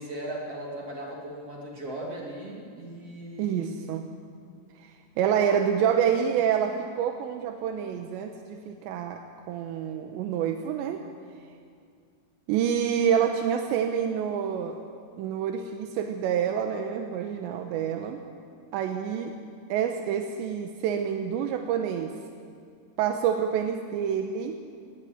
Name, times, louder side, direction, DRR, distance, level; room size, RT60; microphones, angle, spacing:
voice 1, 0.0-3.7, right 1 dB, 40° right, -2 dB, 3.3 m, -38 dB
voice 2, 3.4-4.0 4.8-9.2 9.5-11.0 12.5-14.8 15.2-18.2 18.7-19.3 19.7-22.1 23.0-24.6, right 8 dB, 80° right, 5 dB, 3.2 m, -27 dB
20.5 x 18.0 x 9.4 m, 2.2 s
omnidirectional pair, 5.2 m